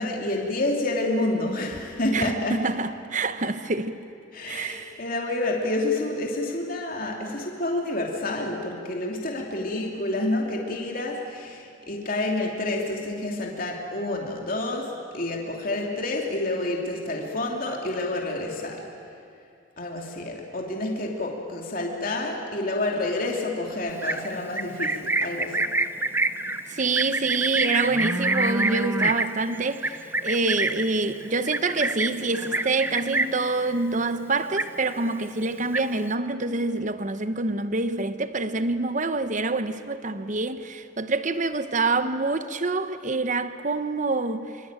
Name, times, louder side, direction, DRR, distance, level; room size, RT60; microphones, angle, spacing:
voice 1, 0.0-2.6 4.3-18.8 19.8-25.7, left 2 dB, 45° left, 2.9 m, -29 dB
voice 2, 2.1-4.0 4.5-5.0 26.7-44.5, right 3 dB, 40° right, 1.0 m, -26 dB
Livestock farm animals working animals, 23.9-33.5 33.8-34.2 34.4-35.1 35.4-36.1, right 2 dB, 10° right, 0.7 m, -27 dB
25.5 x 25.5 x 9.1 m
head